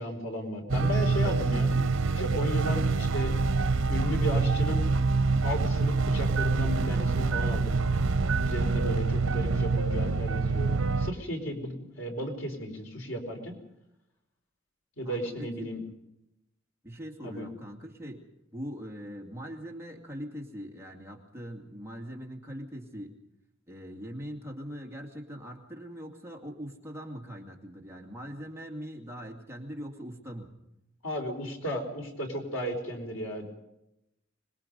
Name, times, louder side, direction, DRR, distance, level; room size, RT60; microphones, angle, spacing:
voice 1, 0.0-1.7 2.1-3.3 3.9-4.9 5.4-7.8 8.4-10.7 11.0-13.5 15.0-15.8 17.2-17.5 31.0-33.5, equal, 80° left, 2 dB, 4.5 m, -34 dB
sound 1, 0.7-11.1, right 3 dB, 90° right, 0.8 m, -26 dB
voice 2, 15.0-15.8 16.8-18.2 18.5-23.1 23.7-30.5, equal, 15° right, -1 dB, 2.4 m, -41 dB
25.5 x 21.0 x 5.4 m, 0.86 s
head